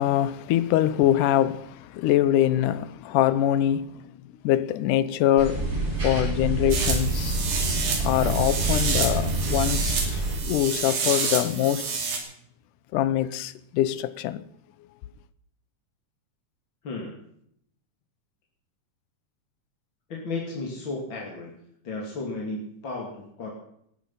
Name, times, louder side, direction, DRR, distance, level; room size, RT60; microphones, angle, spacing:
voice 1, 0.0-4.1 4.4-5.7 6.0-7.4 8.0-11.8 12.9-14.4, left 12 dB, 90° left, 2.3 m, -24 dB
sound 1, 5.4-10.3, right 2 dB, 50° right, 7.7 m, -27 dB
sound 2, 6.7-12.2, right 5 dB, 90° right, 4.3 m, -29 dB
voice 2, 16.8-17.2 20.1-21.5 21.8-23.6, left 3 dB, 40° left, 3.0 m, -34 dB
18.0 x 12.5 x 5.6 m
omnidirectional pair, 3.6 m